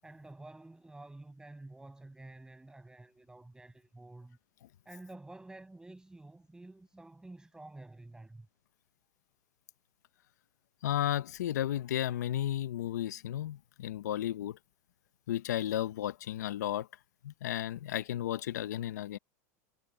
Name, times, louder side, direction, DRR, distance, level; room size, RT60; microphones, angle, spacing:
voice 1, 0.0-4.4 4.8-8.5, right 2 dB, 10° right, 6.5 m, -50 dB
voice 2, 10.8-14.6 15.3-16.9 17.2-19.2, left 12 dB, 85° left, 1.0 m, -33 dB
hypercardioid pair, 105°, 9 cm